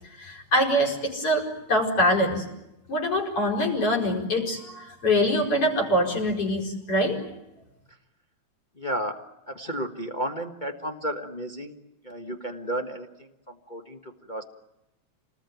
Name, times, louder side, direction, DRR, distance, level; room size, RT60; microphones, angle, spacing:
voice 1, 0.2-2.4 2.9-7.3, equal, 50° left, 1 dB, 5.8 m, -24 dB
voice 2, 8.8-11.8 12.0-14.4, right 1 dB, 25° left, 2 dB, 1.1 m, -33 dB
28.5 x 20.0 x 9.3 m, 0.92 s
omnidirectional pair, 3.3 m